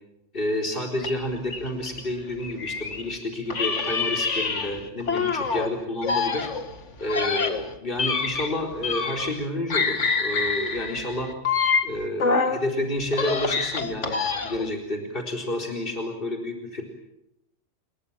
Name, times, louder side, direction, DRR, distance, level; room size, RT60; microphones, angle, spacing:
voice 1, 0.3-6.5 7.0-11.3 11.8-16.8, left 1 dB, 50° left, 1 dB, 4.5 m, -30 dB
sound 1, 1.0-3.1 3.5-5.7 6.0-9.4 9.7-12.6 13.0-14.7, left 4 dB, 80° left, 2.2 m, -26 dB
29.5 x 22.5 x 7.4 m, 0.86 s
omnidirectional pair, 1.2 m